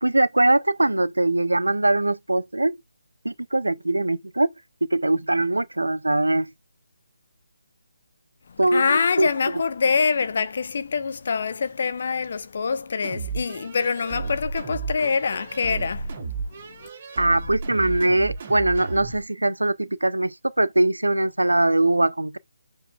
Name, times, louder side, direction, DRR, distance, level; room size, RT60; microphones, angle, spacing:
voice 1, 0.0-2.8 3.2-4.5 4.8-6.5 8.6-9.3 17.2-22.4, right 2 dB, 75° right, 0.7 m, -22 dB
voice 2, 8.5-16.9, left 5 dB, 45° left, 0.9 m, -25 dB
sound 1, 13.0-19.2, right 4 dB, 35° right, 3.0 m, -33 dB
7.6 x 7.1 x 2.4 m
figure-of-eight pair, 150°, 0 cm